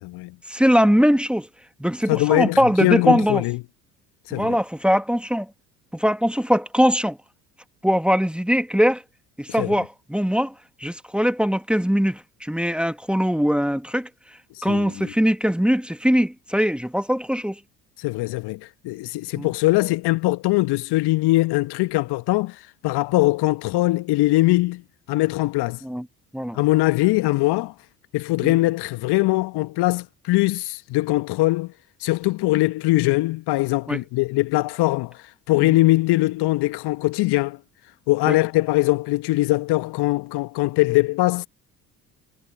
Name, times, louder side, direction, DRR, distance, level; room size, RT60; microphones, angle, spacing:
voice 1, 0.5-1.5 1.8-3.4 4.3-5.5 5.9-7.2 7.8-9.0 9.4-10.5 10.8-14.1 14.6-17.6 19.4-19.5 25.8-26.1 26.3-26.6 28.4-28.6 33.9-34.0 35.6-35.8 38.3-38.4, equal, ahead, 1.9 m, -21 dB
voice 2, 2.1-3.6 4.3-4.6 9.6-9.7 14.6-15.1 18.0-22.6 22.8-24.8 25.1-25.8 26.5-27.7 28.1-31.7 32.0-35.2 35.5-37.6 38.1-41.5, left 20 dB, 55° left, 1.7 m, -21 dB
figure-of-eight pair, 60°, 47 cm